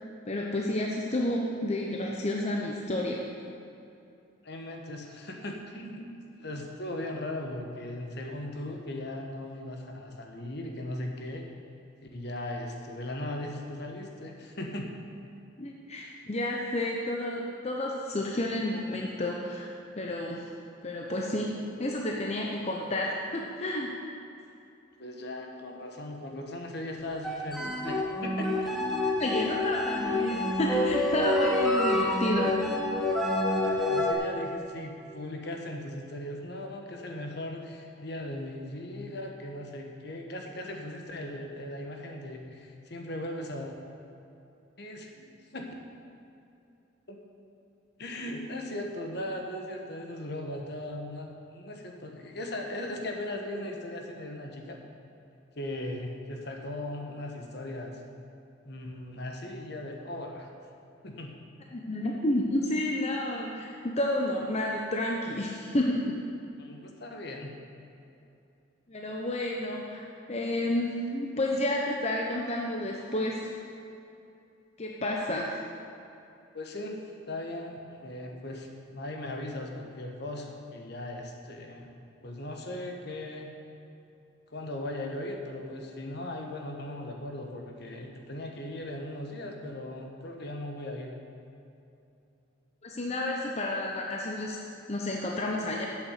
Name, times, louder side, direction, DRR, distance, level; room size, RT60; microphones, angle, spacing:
voice 1, 0.3-3.2 15.6-19.7 20.0-20.5 20.8-23.9 29.2-32.5 61.7-66.2 68.9-70.0 70.3-73.4 74.8-75.6 92.8-94.6 94.9-95.9, left 1 dB, 35° left, -1 dB, 0.8 m, -30 dB
voice 2, 4.4-6.1 6.4-11.5 12.0-14.9 25.0-28.7 33.7-43.7 44.8-45.7 47.1-47.2 48.0-54.8 55.5-58.0 58.6-60.5 61.0-61.3 66.6-67.5 76.5-81.9 82.2-83.5 84.5-91.1, left 1 dB, 55° left, 2 dB, 1.2 m, -38 dB
sound 1, 27.1-34.1, left 1 dB, ahead, 1.0 m, -28 dB
8.2 x 7.0 x 8.1 m, 2.7 s
head